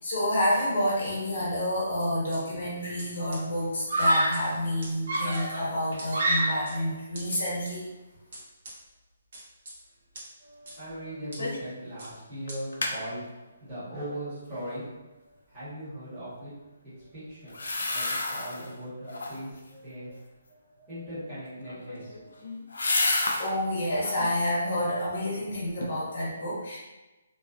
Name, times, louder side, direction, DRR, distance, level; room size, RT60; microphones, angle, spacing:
voice 1, 0.0-7.9 23.4-26.8, left 1 dB, 45° left, -6 dB, 0.9 m, -29 dB
sound 1, 2.0-2.4 3.0-3.1 3.3-3.4 4.0-4.4 4.8-4.9 5.3-5.4 6.0-6.1 6.7-6.8 7.1-7.7 8.3-8.8 9.3-9.7 10.1-10.3 10.7-10.8 11.3-11.4 12.0-12.1 12.5-12.6, right 1 dB, 40° right, 0.7 m, -43 dB
Screaming, 2.3-2.8 3.9-4.5 5.1-6.8, right 1 dB, 85° right, 1.0 m, -27 dB
voice 2, 10.4-16.5 17.0-22.5, equal, 5° right, -16 dB, 1.1 m, -40 dB
sound 2, 11.4-11.7 12.0-12.1 12.5-13.0 17.5-18.7 19.1-19.6 21.6-23.5 23.9-24.3 24.8-25.5 25.8-25.9, left 2 dB, 90° left, 0.4 m, -30 dB
2.4 x 2.3 x 2.4 m, 1.1 s
hypercardioid pair, 180°, 0 cm